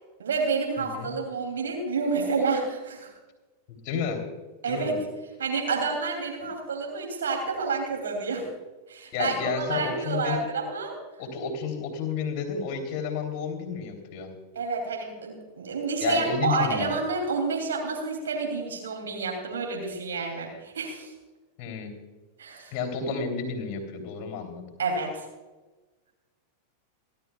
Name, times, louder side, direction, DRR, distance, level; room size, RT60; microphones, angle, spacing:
voice 1, 0.2-3.1 4.6-5.0 5.4-8.4 8.9-11.0 14.5-21.1 22.4-22.7 24.8-25.3, right 4 dB, 65° right, 1 dB, 2.9 m, -29 dB
voice 2, 0.8-1.1 3.7-4.2 4.7-5.0 9.1-10.4 11.2-14.3 16.0-16.9 21.6-21.9 22.7-24.6, left 5 dB, 40° left, 4 dB, 3.1 m, -31 dB
28.5 x 12.0 x 2.4 m, 1.2 s
figure-of-eight pair, 90°, 0 cm